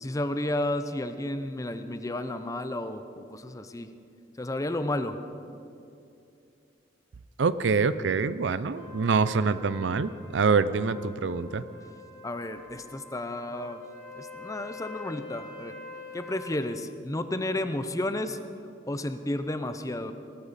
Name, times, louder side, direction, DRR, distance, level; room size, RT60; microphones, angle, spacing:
voice 1, 0.0-3.9 4.4-5.2 12.2-13.8 14.2-15.7 16.1-18.4 18.9-20.1, left 1 dB, 20° left, 10 dB, 0.6 m, -32 dB
voice 2, 7.4-11.6, right 4 dB, 75° right, 15 dB, 0.5 m, -25 dB
Trumpet, 8.7-16.6, left 3 dB, 80° left, 4.0 m, -46 dB
19.0 x 14.0 x 4.2 m, 2.6 s
head